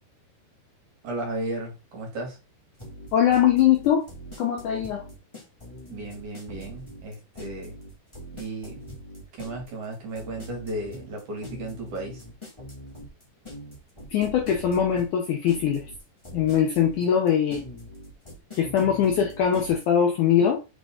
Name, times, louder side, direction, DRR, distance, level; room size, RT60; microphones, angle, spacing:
voice 1, 1.0-2.4 5.9-7.8 8.3-8.9 9.3-12.2, right 2 dB, 55° right, 3.2 m, -34 dB
sound 1, 2.8-19.8, equal, 15° left, 1.0 m, -42 dB
voice 2, 3.1-4.1 4.4-5.0 14.1-15.8 16.3-17.6 18.6-20.6, left 9 dB, 70° left, 1.9 m, -22 dB
7.8 x 3.9 x 3.7 m
omnidirectional pair, 4.6 m